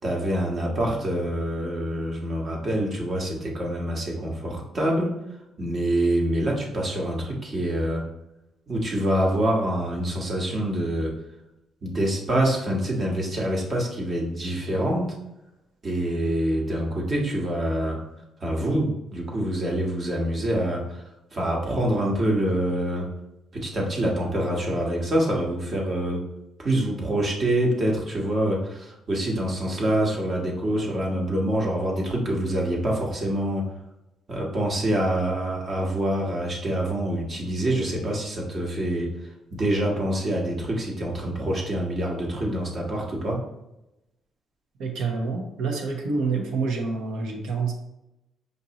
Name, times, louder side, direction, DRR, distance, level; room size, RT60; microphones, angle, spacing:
voice 1, 0.0-5.1 5.6-8.0 8.7-11.1 11.8-15.1 15.8-18.0 18.4-21.0 21.3-23.1 23.6-26.2 26.6-33.7 34.3-39.1 39.5-43.4, right 1 dB, 45° right, -1 dB, 1.2 m, -26 dB
voice 2, 44.8-47.7, right 4 dB, 85° right, 2 dB, 0.8 m, -27 dB
5.2 x 2.6 x 2.9 m, 0.90 s
cardioid pair, 90°, 0 cm